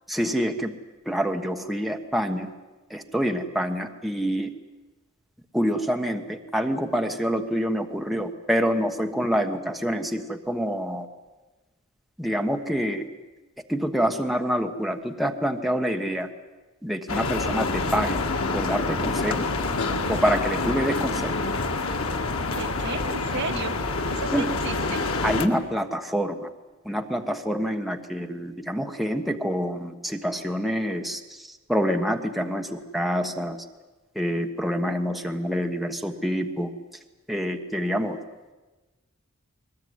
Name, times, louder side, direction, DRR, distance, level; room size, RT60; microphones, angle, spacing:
voice 1, 0.1-0.7 1.0-2.5 2.9-4.5 5.5-11.1 12.2-13.1 13.7-16.3 16.8-18.2 18.5-19.5 20.1-21.3 24.3-24.5 25.2-26.5 26.8-33.6 34.1-36.7 37.3-38.2, equal, ahead, 3 dB, 1.3 m, -26 dB
sound 1, 17.1-25.5, left 3 dB, 85° left, 2.0 m, -27 dB
voice 2, 22.5-23.8 24.1-25.0, right 4 dB, 60° right, 7 dB, 1.4 m, -34 dB
21.5 x 20.0 x 9.5 m, 1.2 s
head